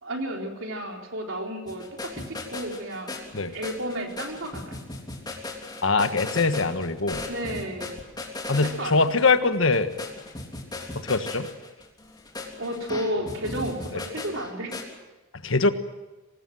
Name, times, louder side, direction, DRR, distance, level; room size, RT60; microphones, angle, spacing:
voice 1, 0.0-3.2 3.5-4.8 7.3-8.0 8.6-9.0 12.6-14.7, right 1 dB, 70° right, 1 dB, 4.3 m, -32 dB
sound 1, 1.7-14.8, left 2 dB, 20° left, 3.5 m, -37 dB
voice 2, 5.8-7.2 8.5-9.9 10.9-11.5 13.9-14.0 15.4-15.7, left 3 dB, 70° left, 9 dB, 1.4 m, -22 dB
24.5 x 18.5 x 7.7 m, 1.1 s
head